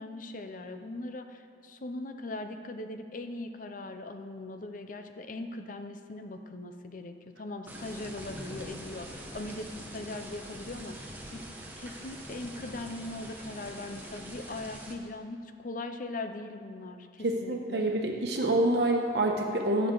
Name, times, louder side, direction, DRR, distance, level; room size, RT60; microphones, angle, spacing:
voice 1, 0.0-11.4 11.8-17.9, left 2 dB, 50° left, 7 dB, 0.6 m, -40 dB
sound 1, 7.7-14.9, right 1 dB, 10° right, 1.1 m, -44 dB
voice 2, 17.2-19.9, right 1 dB, 70° right, 1 dB, 1.1 m, -27 dB
15.0 x 7.0 x 3.9 m, 2.3 s
head